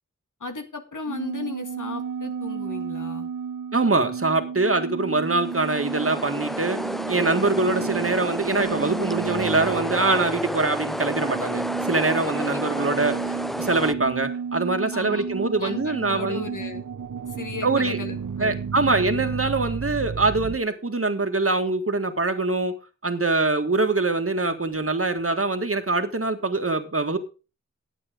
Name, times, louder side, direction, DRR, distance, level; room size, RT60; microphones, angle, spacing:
voice 1, 0.4-3.3 12.3-12.9 14.9-15.2 15.6-16.8 17.3-18.5, left 4 dB, 80° left, 6 dB, 2.1 m, -35 dB
sound 1, 1.1-20.6, right 6 dB, 80° right, 0.9 m, -33 dB
voice 2, 3.7-6.8 7.1-13.1 13.6-16.5 17.6-18.0 18.4-22.7 23.0-27.2, right 3 dB, 45° right, 7 dB, 1.8 m, -23 dB
sound 2, 5.2-13.9, equal, ahead, 0.5 m, -31 dB
11.5 x 8.7 x 5.1 m, 0.33 s
wide cardioid pair, 65°, 30 cm